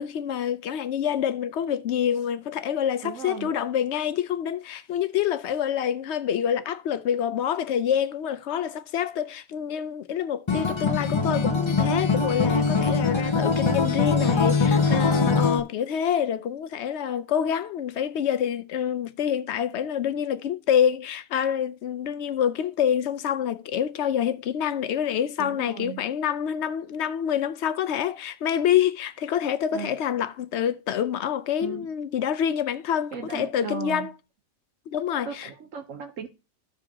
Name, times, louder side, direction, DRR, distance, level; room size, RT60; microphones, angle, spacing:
voice 1, 0.0-34.1 34.9-35.5, left 9 dB, 65° left, 0.8 m, -27 dB
voice 2, 3.0-3.5 14.8-15.3 25.4-26.0 29.7-29.9 31.6-31.9 33.1-34.1 35.3-36.3, right 7 dB, 70° right, 1.3 m, -36 dB
Acoustic guitar, 10.5-15.6, left 4 dB, 30° left, 0.5 m, -22 dB
14.5 x 4.9 x 2.8 m
omnidirectional pair, 1.4 m